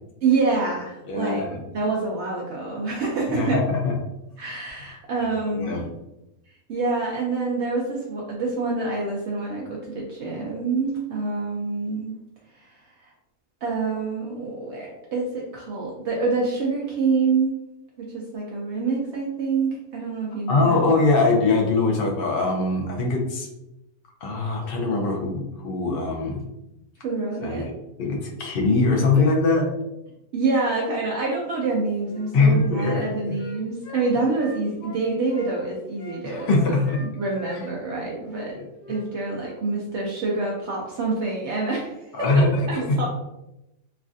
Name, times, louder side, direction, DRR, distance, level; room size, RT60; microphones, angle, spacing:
voice 1, 0.2-3.6 4.4-5.8 6.7-12.1 12.5-12.8 13.6-17.5 18.1-20.9 27.0-27.7 30.3-36.8 37.0-38.5 38.9-42.0 42.3-43.1, right 3 dB, 65° right, -3 dB, 0.7 m, -26 dB
voice 2, 1.1-1.6 3.3-3.9 5.5-5.8 20.5-23.5 24.2-26.4 27.4-27.6 28.0-29.7 32.3-33.4 36.2-37.0 42.1-42.8, left 3 dB, 55° left, -1 dB, 0.7 m, -22 dB
Wind instrument woodwind instrument, 32.1-35.5 36.0-38.0 38.3-38.5 38.8-39.0 39.3-39.6, left 3 dB, 90° left, 1.1 m, -42 dB
3.2 x 2.4 x 2.5 m, 0.92 s
omnidirectional pair, 1.5 m